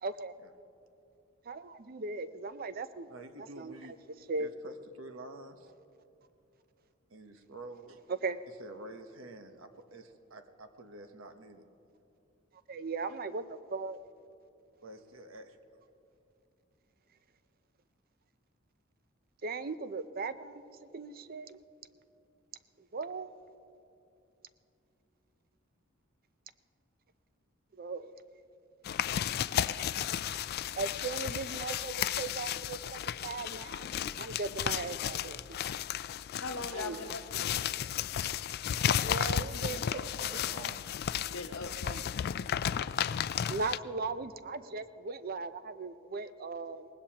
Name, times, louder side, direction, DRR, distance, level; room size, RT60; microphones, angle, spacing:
voice 1, 0.0-0.3 1.5-3.1 3.6-3.9 4.3-4.5 8.2-8.4 12.7-14.0 19.4-21.6 22.9-23.5 27.8-28.1 30.8-33.9 34.2-35.6 36.7-37.0 39.0-40.0 41.8-42.0 43.5-46.9, right 4 dB, 45° right, 13 dB, 0.5 m, -38 dB
voice 2, 3.1-4.0 4.4-5.7 7.1-8.0 8.6-11.6 14.8-15.8 39.4-40.9, right 2 dB, 85° right, 8 dB, 1.0 m, -48 dB
sound 1, 28.8-43.8, left 10 dB, 50° left, 0.3 m, -34 dB
voice 3, 36.4-37.7 38.3-38.7 41.2-41.8, left 3 dB, 75° left, 7 dB, 0.9 m, -41 dB
23.5 x 19.0 x 2.9 m, 2.8 s
head